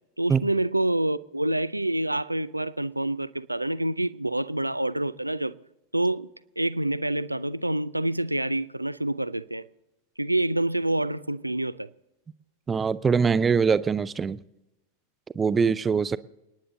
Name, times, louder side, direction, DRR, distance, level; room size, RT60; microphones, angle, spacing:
voice 1, 0.2-5.6 5.9-6.3 6.6-9.6 10.2-11.9, right 1 dB, 85° right, 0.5 m, -27 dB
voice 2, 12.7-14.4 15.4-16.2, right 5 dB, 15° right, 0.6 m, -23 dB
29.5 x 10.0 x 3.9 m
figure-of-eight pair, 90°, 0 cm